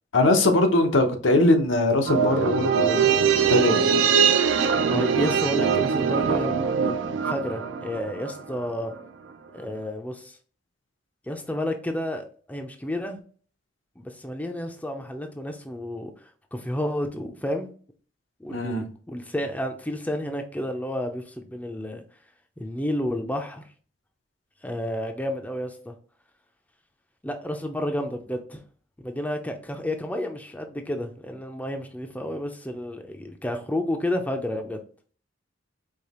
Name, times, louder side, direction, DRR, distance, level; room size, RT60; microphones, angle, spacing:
voice 1, 0.1-3.0 3.4-3.8 18.5-18.9, left 2 dB, 80° left, 0.8 m, -21 dB
sound 1, 2.1-8.7 8.9-9.0, right 6 dB, 75° right, 0.5 m, -22 dB
voice 2, 4.9-7.0 7.2-8.9 9.5-10.4 11.3-13.2 14.0-17.7 18.4-22.0 22.6-23.6 24.6-25.9 27.2-28.6 29.0-34.8, left 1 dB, 10° left, 0.5 m, -31 dB
4.9 x 2.9 x 2.9 m
head